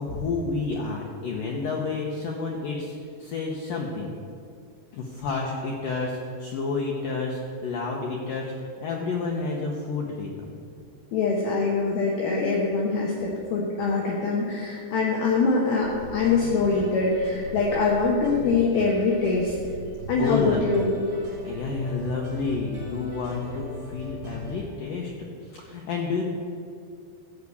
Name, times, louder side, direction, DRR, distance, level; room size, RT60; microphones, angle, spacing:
voice 1, 0.0-4.1 4.9-8.5 8.8-10.6 20.2-20.6 21.4-25.1 25.4-26.2, left 4 dB, 85° left, -1 dB, 1.8 m, -30 dB
voice 2, 11.1-19.5 20.1-20.9, left 4 dB, 70° left, -3 dB, 2.7 m, -24 dB
sound 1, 15.8-24.7, right 1 dB, 35° right, 3.5 m, -40 dB
13.5 x 4.9 x 8.2 m, 2.3 s
omnidirectional pair, 5.1 m